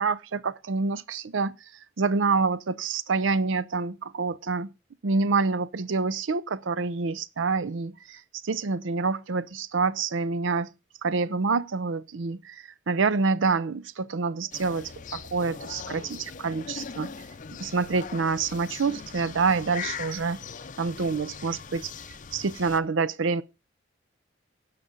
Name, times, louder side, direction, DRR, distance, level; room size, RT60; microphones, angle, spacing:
voice 1, 0.0-1.5 2.0-4.7 5.0-10.7 11.0-17.1 17.6-20.4 20.8-21.9 22.3-23.4, right 4 dB, 75° right, 0.6 m, -27 dB
sound 1, 14.5-22.8, left 6 dB, 40° left, 0.5 m, -40 dB
17.5 x 5.9 x 3.9 m
head